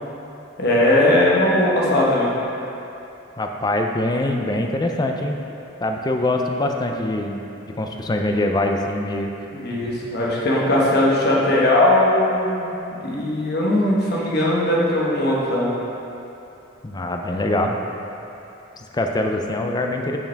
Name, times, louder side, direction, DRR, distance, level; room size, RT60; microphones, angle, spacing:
voice 1, 0.6-2.3 9.5-12.7 13.0-15.7, left 1 dB, 55° left, -4 dB, 1.2 m, -19 dB
voice 2, 3.4-5.4 5.8-9.3 16.8-17.8 18.8-20.2, left 1 dB, 20° left, 3 dB, 0.4 m, -23 dB
6.6 x 5.9 x 3.4 m, 2.8 s
head